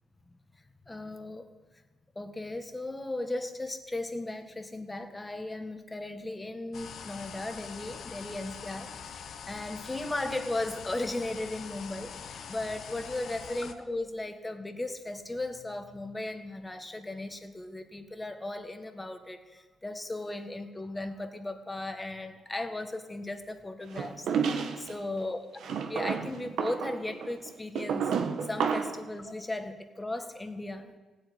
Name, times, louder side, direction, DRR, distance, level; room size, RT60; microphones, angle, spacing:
voice 1, 0.9-1.8 2.2-9.2 9.5-25.4 25.7-28.1 28.4-31.0, left 2 dB, 15° left, 7 dB, 1.7 m, -36 dB
sound 1, 6.7-13.7, left 7 dB, 60° left, 1.2 m, -44 dB
sound 2, 23.9-24.9 25.6-29.1, right 6 dB, 75° right, 1.4 m, -31 dB
16.5 x 8.4 x 9.8 m, 1.2 s
cardioid pair, 90°, 0 cm